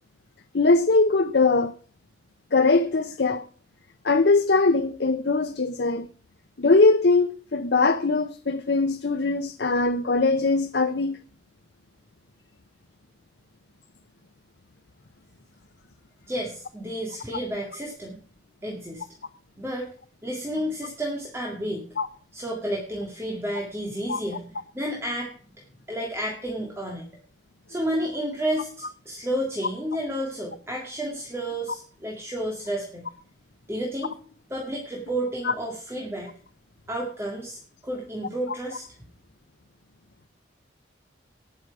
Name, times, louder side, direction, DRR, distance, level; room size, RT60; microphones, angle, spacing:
voice 1, 0.5-1.7 2.5-3.4 4.0-6.1 6.6-11.2 22.0-22.1 24.1-24.2 35.4-35.5, left 3 dB, 60° left, 0.6 m, -21 dB
voice 2, 16.3-18.2 18.6-19.1 19.6-19.9 20.2-21.9 22.3-25.3 25.9-27.1 27.7-33.1 33.7-34.2 34.5-36.3 36.9-38.8, right 1 dB, 15° right, 2.0 m, -31 dB
18.5 x 6.3 x 4.8 m
head